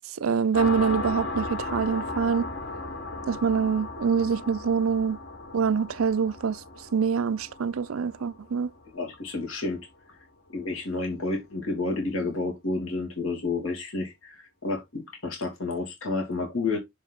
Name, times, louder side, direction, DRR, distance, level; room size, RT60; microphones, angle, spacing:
voice 1, 0.2-2.5 3.3-5.2 5.5-6.6 6.9-8.7, right 6 dB, 80° right, 0.5 m, -25 dB
sound 1, 0.5-9.8, left 3 dB, 55° left, 1.5 m, -36 dB
voice 2, 8.9-9.8 10.5-16.8, left 3 dB, 80° left, 2.7 m, -30 dB
6.5 x 5.2 x 3.6 m
head